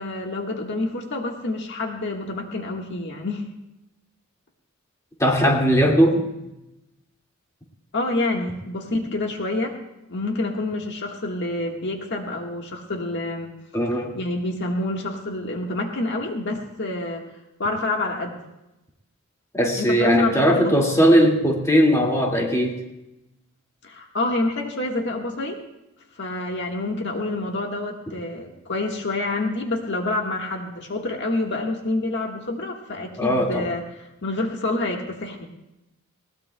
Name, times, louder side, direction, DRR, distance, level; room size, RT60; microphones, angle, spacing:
voice 1, 0.0-3.5 7.9-9.8 10.1-13.5 13.9-17.2 17.6-18.4 19.8-20.7 23.8-25.6 26.2-33.8 34.2-35.5, left 2 dB, 60° left, 1 dB, 1.6 m, -27 dB
voice 2, 5.2-6.3 13.7-14.1 19.5-22.8 33.2-33.7, equal, 15° left, -1 dB, 2.1 m, -19 dB
20.5 x 18.5 x 2.3 m, 0.93 s
head